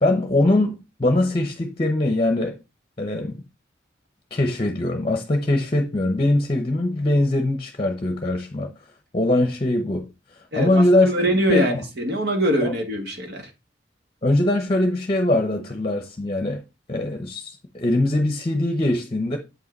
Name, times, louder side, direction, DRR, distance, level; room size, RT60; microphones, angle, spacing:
voice 1, 0.0-2.6 3.0-3.4 4.3-8.7 9.1-10.1 10.5-11.1 11.5-11.8 12.6-12.7 14.2-16.6 16.9-19.4, left 1 dB, 30° left, 0.8 m, -22 dB
voice 2, 10.5-13.5, equal, 60° right, 1.8 m, -23 dB
7.8 x 5.6 x 4.0 m
head